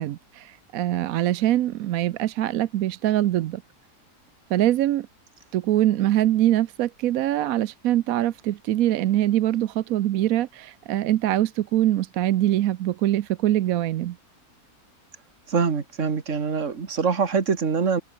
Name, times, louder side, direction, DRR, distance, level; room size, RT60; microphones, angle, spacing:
voice 1, 0.0-3.6 4.5-5.1 5.5-14.2, right 13 dB, 70° right, 1.0 m, -23 dB
voice 2, 15.5-18.0, right 5 dB, 50° right, 2.3 m, -24 dB
omnidirectional pair, 1.7 m